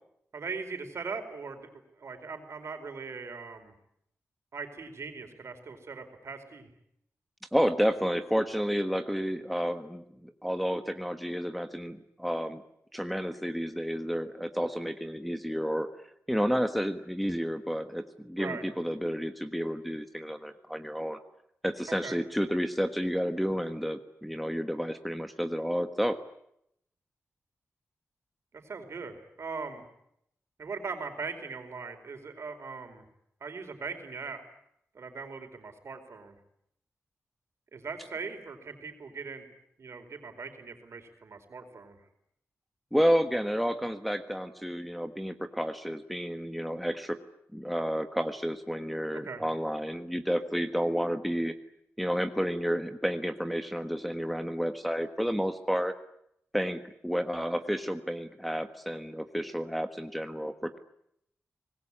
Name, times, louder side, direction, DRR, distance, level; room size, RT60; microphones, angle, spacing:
voice 1, 0.3-1.7 2.0-3.7 4.5-6.7 18.4-18.6 22.0-22.2 28.5-29.8 30.6-33.0 33.4-34.4 34.9-36.4 37.7-39.4 39.8-42.0 49.2-49.4, right 4 dB, 65° right, 6 dB, 4.6 m, -40 dB
voice 2, 7.5-12.6 12.9-15.9 16.3-21.2 21.6-26.2 42.9-47.2 47.5-51.5 52.0-55.9 56.5-60.8, equal, ahead, 7 dB, 1.4 m, -30 dB
25.0 x 20.0 x 9.9 m, 0.75 s
wide cardioid pair, 100°, 5 cm